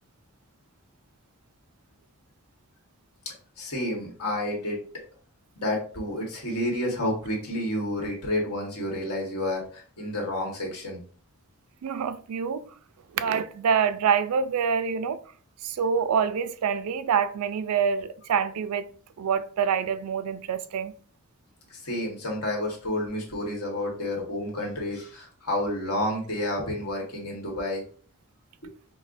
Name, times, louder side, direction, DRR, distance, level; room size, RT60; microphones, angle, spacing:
voice 1, 3.2-4.8 5.5-11.0 21.7-27.8 28.6-28.7, left 1 dB, 85° left, 1.4 m, -30 dB
voice 2, 11.8-12.7 13.1-15.2 15.6-18.9 19.2-20.9, right 6 dB, 80° right, 0.3 m, -26 dB
5.2 x 2.1 x 2.5 m
head